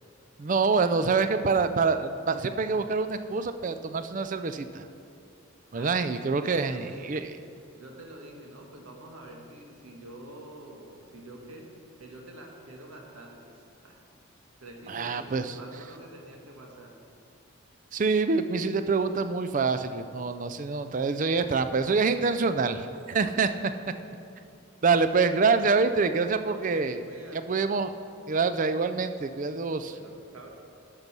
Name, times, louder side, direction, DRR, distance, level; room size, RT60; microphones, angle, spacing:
voice 1, 0.4-4.9 5.7-7.3 14.9-15.6 17.9-23.7 24.8-27.0 27.3-27.9 28.3-30.0, right 4 dB, 35° right, 10 dB, 0.4 m, -26 dB
voice 2, 5.7-7.3 7.7-11.7 12.0-14.0 14.6-16.9 26.3-27.4 29.9-30.6, right 1 dB, 85° right, 1 dB, 1.5 m, -47 dB
12.0 x 5.3 x 6.1 m, 2.5 s
head